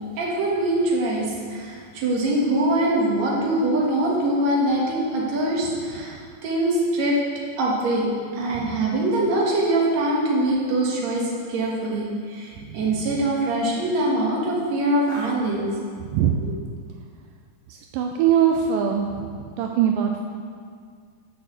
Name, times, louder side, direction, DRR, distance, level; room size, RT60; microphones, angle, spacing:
voice 1, 0.2-6.2 6.4-7.2 7.6-8.1 8.3-15.7 16.4-16.5, right 1 dB, 60° right, -4 dB, 2.6 m, -23 dB
voice 2, 12.6-13.1 16.0-16.4 17.7-20.2, right 9 dB, 85° right, 2 dB, 2.2 m, -23 dB
6.6 x 6.4 x 6.9 m, 2.1 s
omnidirectional pair, 3.8 m